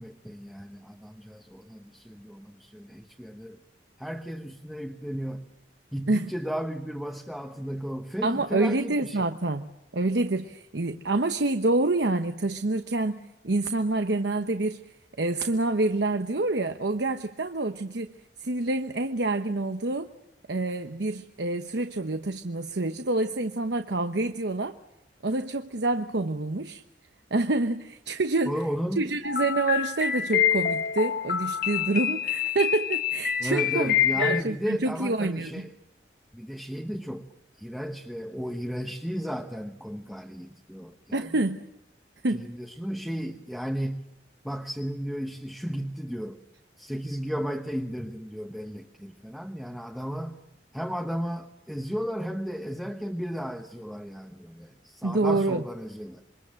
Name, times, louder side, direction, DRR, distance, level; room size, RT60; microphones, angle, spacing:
voice 1, 0.0-3.6 4.0-5.4 5.9-9.2 28.4-29.1 33.4-35.7 36.3-37.3 37.6-41.4 42.3-44.0 44.4-46.4 46.8-50.4 50.7-56.2, equal, ahead, 2 dB, 1.1 m, -34 dB
voice 2, 8.2-9.7 9.9-13.2 13.4-14.8 15.2-18.1 18.4-20.1 20.5-24.7 25.2-26.8 27.3-28.6 29.0-35.7 41.1-41.7 42.2-42.5 55.0-55.6, right 2 dB, 70° right, 8 dB, 1.0 m, -27 dB
sound 1, 29.2-34.4, left 8 dB, 50° left, 1.4 m, -26 dB
27.0 x 24.0 x 7.7 m, 0.86 s
head